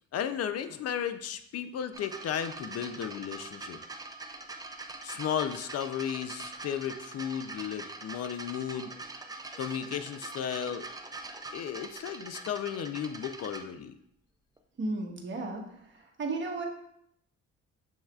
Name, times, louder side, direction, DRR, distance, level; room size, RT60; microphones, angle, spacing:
voice 1, 0.1-3.8 5.0-8.9 9.6-10.9 11.5-13.9, left 9 dB, 55° left, 11 dB, 0.4 m, -34 dB
sound 1, 1.9-13.6 14.6-14.7, right 3 dB, 15° right, 0.4 m, -43 dB
voice 2, 14.8-15.6 16.2-16.7, right 2 dB, 40° right, 1 dB, 1.0 m, -33 dB
7.1 x 3.1 x 2.3 m, 0.73 s
cardioid pair, 90°, 30 cm